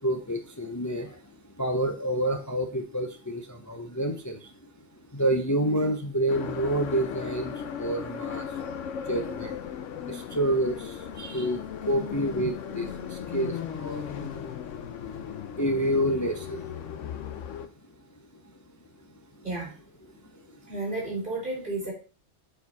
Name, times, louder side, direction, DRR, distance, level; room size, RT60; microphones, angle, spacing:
voice 1, 0.0-17.5 18.4-18.6 18.9-19.4 20.1-20.7, right 1 dB, 20° left, 5 dB, 0.5 m, -30 dB
sound 1, 6.3-17.7, left 8 dB, 85° left, 1.1 m, -37 dB
voice 2, 19.4-19.8 20.7-21.9, right 2 dB, 45° right, -2 dB, 3.2 m, -32 dB
7.2 x 4.4 x 4.1 m, 0.36 s
omnidirectional pair, 1.3 m